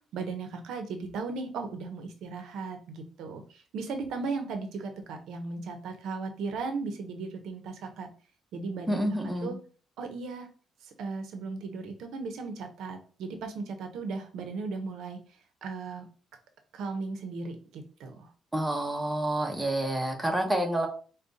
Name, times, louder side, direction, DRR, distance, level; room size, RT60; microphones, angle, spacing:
voice 1, 0.1-8.1 8.5-9.6 10.0-10.5 10.8-15.2 15.6-16.1 16.7-18.3, right 4 dB, 80° right, 6 dB, 0.7 m, -36 dB
voice 2, 8.9-9.5 18.5-20.9, right 1 dB, 10° right, 2 dB, 0.8 m, -28 dB
4.9 x 2.2 x 2.6 m, 0.39 s
cardioid pair, 90°, 0 cm